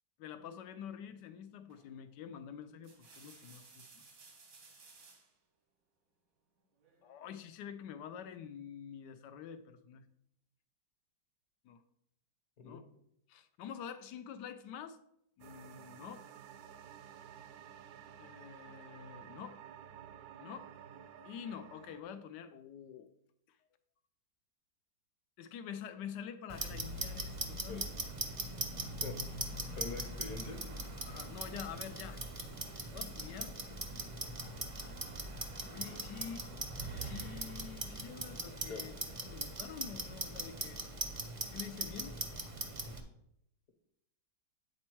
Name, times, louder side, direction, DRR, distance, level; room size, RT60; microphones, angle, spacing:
voice 1, 0.2-4.0 7.0-10.0 11.6-11.8 12.6-12.8 13.3-15.0 15.4-16.2 18.2-19.5 20.4-20.7 21.2-23.1 25.4-27.9 31.1-32.2 32.9-33.6 35.7-36.5 36.9-38.9 39.2-40.8 41.5-42.1, left 8 dB, 80° left, 9 dB, 1.3 m, -47 dB
sound 1, 1.7-2.0 2.6-5.3 6.8-7.5, right 4 dB, 85° right, 2.1 m, -59 dB
sound 2, 15.4-22.0, right 9 dB, 70° right, 1.0 m, -53 dB
Clock, 26.5-43.0, right 2 dB, 35° right, 0.5 m, -41 dB
voice 2, 29.8-30.6 38.7-38.8, left 4 dB, 55° left, 4 dB, 1.5 m, -43 dB
8.8 x 4.2 x 4.6 m, 0.76 s
omnidirectional pair, 1.9 m